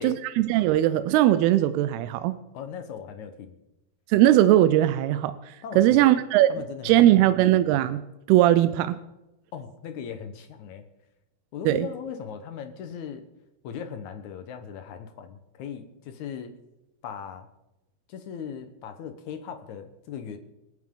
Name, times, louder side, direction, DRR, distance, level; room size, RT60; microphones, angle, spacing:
voice 1, 0.0-2.3 4.1-6.5 6.8-8.0 8.3-9.0 11.7-11.9, right 13 dB, 85° right, 12 dB, 2.6 m, -20 dB
voice 2, 2.5-3.6 5.6-6.2 6.5-7.3 9.5-10.9 11.5-13.3 13.6-16.5 17.0-17.5 18.1-20.4, left 7 dB, 70° left, 8 dB, 1.9 m, -38 dB
27.0 x 9.5 x 3.8 m, 0.95 s
omnidirectional pair, 4.5 m